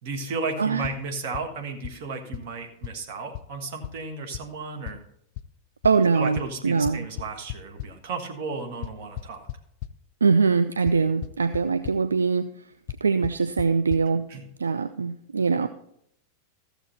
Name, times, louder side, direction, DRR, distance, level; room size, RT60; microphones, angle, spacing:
voice 1, 0.0-5.0 6.1-9.5 14.3-14.4, right 4 dB, 50° right, 4 dB, 1.6 m, -34 dB
voice 2, 0.6-0.9 5.8-7.1 10.2-12.7 13.0-14.2 14.6-15.7, right 5 dB, 75° right, 10 dB, 0.4 m, -23 dB
sound 1, 0.8-0.9 1.3-1.4 1.8-1.9 2.3-2.4 2.8-2.9 3.3-3.4 3.8-3.9 4.3-4.4 4.9-5.0 5.4-5.5 5.8-5.9 6.4-6.5 6.9-7.9 8.8-9.9 10.9-11.0 11.2-11.6 11.8-11.9 12.9-13.0 13.2-13.3 13.6-13.7 13.9-14.0, left 13 dB, 45° left, 0.4 m, -33 dB
14.0 x 7.0 x 4.2 m, 0.72 s
figure-of-eight pair, 90°, 0 cm